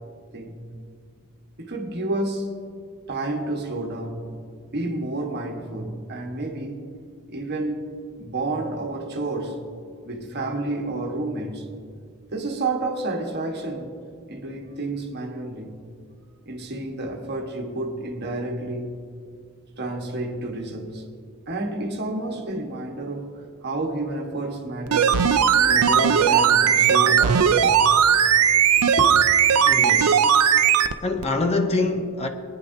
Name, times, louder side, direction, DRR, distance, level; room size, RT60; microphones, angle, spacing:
voice 1, 0.3-0.6 1.6-2.6 3.1-4.4 4.7-6.9 7.3-7.9 8.2-9.6 10.0-11.7 12.3-13.9 14.3-15.8 16.4-19.0 19.8-21.0 21.5-25.2 25.6-27.9 28.7-29.2, right 2 dB, 50° right, 1.3 m, -30 dB
sound 1, 24.9-30.9 31.2-31.3, right 8 dB, 80° right, 0.5 m, -18 dB
voice 2, 29.6-30.3 31.0-32.3, left 3 dB, 30° left, 0.6 m, -25 dB
23.0 x 9.8 x 2.7 m
head